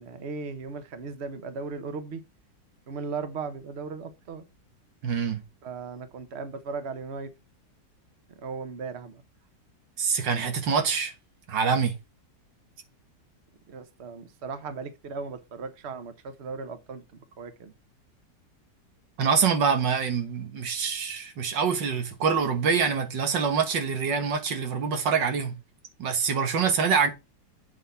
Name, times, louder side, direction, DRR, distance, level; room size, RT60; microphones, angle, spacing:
voice 1, 0.0-2.2 2.9-4.4 5.6-7.3 8.4-9.2 13.7-17.0 17.4-17.7, right 4 dB, 45° right, 1.2 m, -37 dB
voice 2, 5.0-5.4 10.0-11.1 11.5-12.0 19.2-25.6 26.0-27.1, right 6 dB, 90° right, 2.0 m, -25 dB
8.2 x 4.0 x 5.6 m
omnidirectional pair, 1.9 m